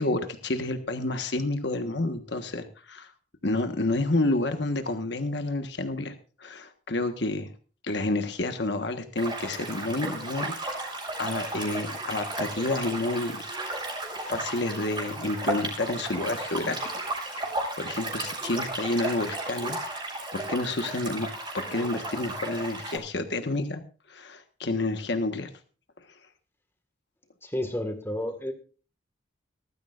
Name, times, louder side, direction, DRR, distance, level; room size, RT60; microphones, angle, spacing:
voice 1, 0.0-3.1 3.4-6.1 6.4-7.5 7.8-10.9 11.2-13.4 14.2-16.9 17.3-17.5 17.8-19.8 20.3-21.3 21.5-23.8 24.1-25.5, left 2 dB, 65° left, 7 dB, 1.3 m, -29 dB
sound 1, 9.2-23.0, right 2 dB, 25° right, 6.0 m, -34 dB
voice 2, 27.4-28.5, left 1 dB, 10° left, 7 dB, 1.7 m, -31 dB
19.5 x 14.0 x 2.5 m, 0.37 s
head